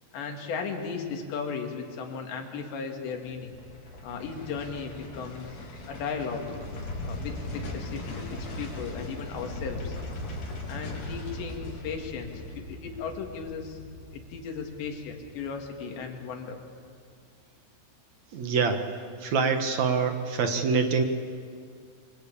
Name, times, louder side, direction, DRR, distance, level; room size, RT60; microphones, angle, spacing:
voice 1, 0.1-3.5 4.0-5.6 5.9-6.4 7.0-10.0 10.7-13.8 14.1-16.6, left 5 dB, 85° left, 3 dB, 4.7 m, -36 dB
sound 1, 3.3-16.3 16.6-16.7, left 1 dB, 70° left, 5.7 m, -39 dB
voice 2, 18.3-18.8 19.2-21.0, right 5 dB, 60° right, 6 dB, 2.0 m, -25 dB
28.0 x 24.0 x 8.7 m, 2.1 s
omnidirectional pair, 4.9 m